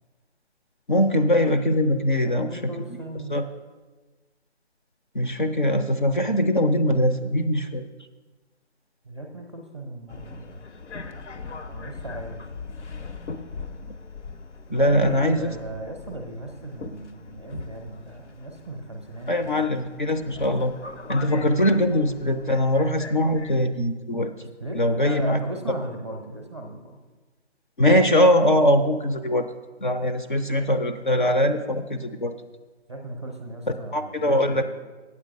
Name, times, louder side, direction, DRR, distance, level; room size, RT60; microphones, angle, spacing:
voice 1, 0.9-2.5 3.3-3.4 5.1-7.8 14.7-15.5 19.3-20.7 21.1-24.3 24.8-25.4 27.8-29.4 29.8-32.3 33.9-34.6, left 1 dB, 45° left, 6 dB, 0.5 m, -21 dB
voice 2, 2.2-3.4 9.0-10.7 11.7-12.5 14.7-19.8 21.3-21.5 24.6-27.0 32.9-34.6, right 2 dB, 25° right, 3 dB, 0.6 m, -37 dB
Subway metro underground, 10.1-23.7, left 4 dB, 70° left, 0.8 m, -40 dB
8.4 x 7.6 x 5.1 m, 1.3 s
figure-of-eight pair, 160°, 36 cm